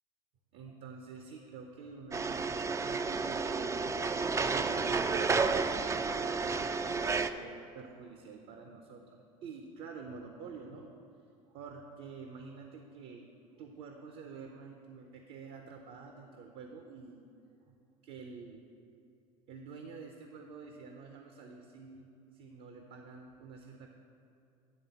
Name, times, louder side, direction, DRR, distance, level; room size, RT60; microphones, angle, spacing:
voice 1, 0.5-2.5 2.8-4.0 4.5-10.9 11.5-13.3 13.6-17.2 17.7-17.8 18.0-18.6 19.5-22.1 22.3-23.9, right 5 dB, 60° right, 3 dB, 0.7 m, -48 dB
sound 1, 2.1-7.3, right 4 dB, 15° right, 0.3 m, -31 dB
9.3 x 3.4 x 6.8 m, 2.6 s
hypercardioid pair, 75°, 18 cm